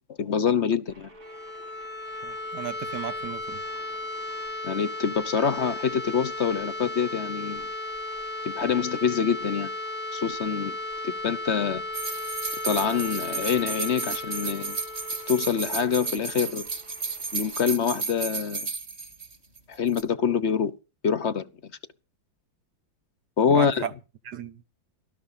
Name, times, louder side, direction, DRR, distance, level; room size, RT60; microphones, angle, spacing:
voice 1, 0.2-1.1 4.6-7.7 8.4-9.7 10.1-10.8 11.0-11.8 12.6-14.8 15.3-16.7 17.3-18.7 19.7-20.7 21.0-21.7 23.4-23.9, left 7 dB, 45° left, 1.0 m, -25 dB
sound 1, 0.9-17.7, right 2 dB, 80° right, 5.1 m, -54 dB
sound 2, 1.1-16.9, left 2 dB, 10° left, 0.5 m, -35 dB
voice 2, 2.2-3.6 23.5-23.9 24.2-24.6, right 9 dB, 60° right, 1.6 m, -35 dB
sound 3, 11.9-19.6 19.9-20.0, right 4 dB, 30° right, 2.7 m, -33 dB
19.0 x 12.0 x 5.7 m
omnidirectional pair, 2.1 m